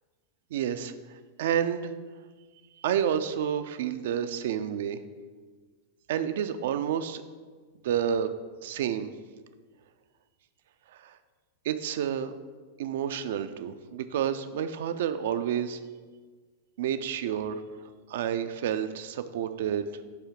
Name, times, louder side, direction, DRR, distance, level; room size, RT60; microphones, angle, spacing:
voice 1, 0.5-1.9 2.8-5.0 6.1-7.2 7.8-8.3 8.6-9.1 10.9-11.2 11.6-12.3 12.8-15.8 16.8-17.6 18.1-20.0, right 9 dB, 55° right, 10 dB, 0.4 m, -29 dB
8.3 x 2.8 x 5.8 m, 1.4 s
figure-of-eight pair, 90°, 0 cm